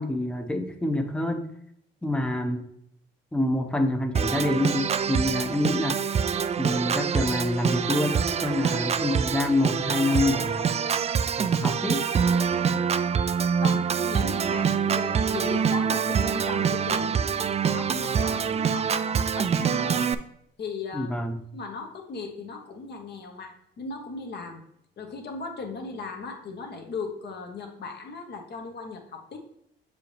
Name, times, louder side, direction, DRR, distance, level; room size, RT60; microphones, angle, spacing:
voice 1, 0.0-1.5 2.0-2.7 3.3-6.0 6.6-10.7 11.4-12.1 20.9-21.4, left 1 dB, 5° left, 5 dB, 0.7 m, -27 dB
Organ, 4.1-20.1, right 7 dB, 35° right, 0.4 m, -25 dB
voice 2, 13.6-17.1 17.6-20.1 20.6-21.1 21.5-24.6 25.0-29.4, left 4 dB, 55° left, 3 dB, 1.3 m, -37 dB
7.1 x 4.8 x 3.3 m, 0.73 s
cardioid pair, 90°, 20 cm